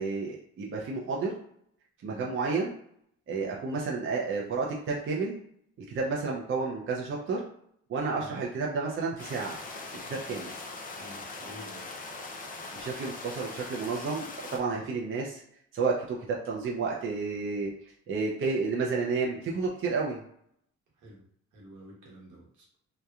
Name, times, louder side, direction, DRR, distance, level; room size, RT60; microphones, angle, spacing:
voice 1, 0.0-1.4 2.0-2.8 3.3-5.4 5.9-7.4 7.9-9.6 10.1-10.5 12.7-15.4 15.7-17.7 18.1-20.2, right 4 dB, 45° right, -2 dB, 0.5 m, -31 dB
sound 1, 9.2-14.6, left 3 dB, 30° left, 0.5 m, -41 dB
voice 2, 11.0-11.9 21.0-21.2 21.5-22.7, equal, 75° right, -4 dB, 1.2 m, -49 dB
2.9 x 2.1 x 2.3 m, 0.68 s
cardioid pair, 90°, 30 cm